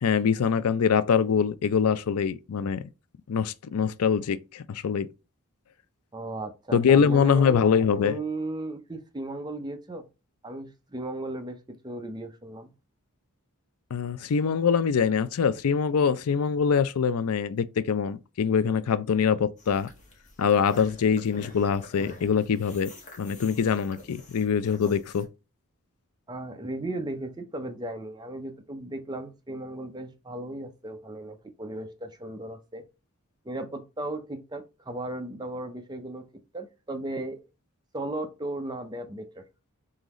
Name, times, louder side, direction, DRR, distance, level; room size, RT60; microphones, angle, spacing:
voice 1, 0.0-2.9 3.3-5.1 6.7-8.2 13.9-19.9 20.4-22.9 23.2-25.3, left 6 dB, 85° left, 0.4 m, -24 dB
voice 2, 6.1-7.6 8.0-10.1 10.4-11.6 11.8-12.7 26.3-32.8 33.4-36.2 36.5-37.4 37.9-39.4, right 2 dB, 20° right, 0.6 m, -36 dB
sound 1, 19.6-25.3, left 1 dB, 35° left, 1.3 m, -47 dB
3.9 x 3.8 x 3.0 m
head